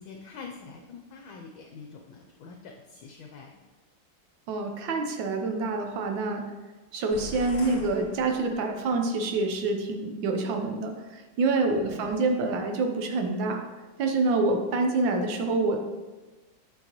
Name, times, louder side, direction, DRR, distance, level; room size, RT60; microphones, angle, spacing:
voice 1, 0.0-3.6, left 5 dB, 75° left, 1 dB, 1.3 m, -45 dB
voice 2, 4.5-6.4 6.9-13.6 14.0-15.8, right 3 dB, 70° right, 4 dB, 1.4 m, -27 dB
sound 1, 7.1-9.0, left 3 dB, 50° left, 0.8 m, -42 dB
9.2 x 4.7 x 2.9 m, 1.2 s
omnidirectional pair, 2.3 m